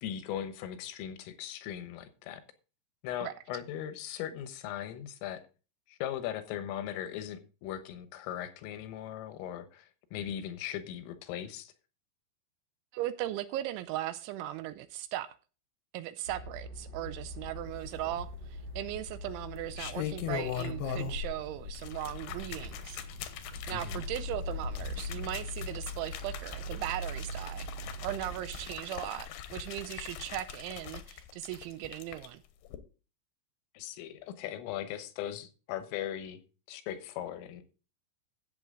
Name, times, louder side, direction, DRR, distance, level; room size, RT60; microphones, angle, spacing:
voice 1, 0.0-2.4 3.0-5.4 5.9-11.7 23.7-24.1 33.8-36.4 36.7-37.6, left 11 dB, 90° left, 3.7 m, -39 dB
voice 2, 12.9-15.3 15.9-23.0 23.7-27.7 28.0-32.4, right 14 dB, 80° right, 2.8 m, -38 dB
sound 1, 16.3-28.7, equal, 60° right, 1.8 m, -41 dB
sound 2, 18.0-18.7 19.5-21.3 21.6-32.3 32.6-32.8, left 11 dB, 70° left, 2.6 m, -41 dB
13.5 x 8.2 x 3.8 m
omnidirectional pair, 5.7 m